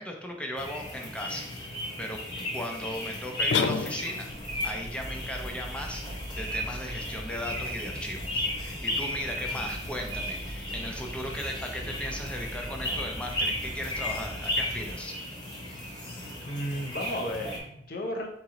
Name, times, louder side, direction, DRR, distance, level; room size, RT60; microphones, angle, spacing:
voice 1, 0.0-2.2 2.5-4.3 4.6-15.1, equal, 5° left, 1 dB, 0.6 m, -37 dB
sound 1, 0.6-17.6, left 1 dB, 30° left, 1.2 m, -35 dB
sound 2, 3.5-4.4, left 6 dB, 85° left, 0.3 m, -28 dB
sound 3, 4.3-14.9, equal, 45° right, 0.9 m, -42 dB
voice 2, 16.5-18.3, equal, 60° left, 3 dB, 0.7 m, -33 dB
4.0 x 3.0 x 3.8 m, 0.74 s
head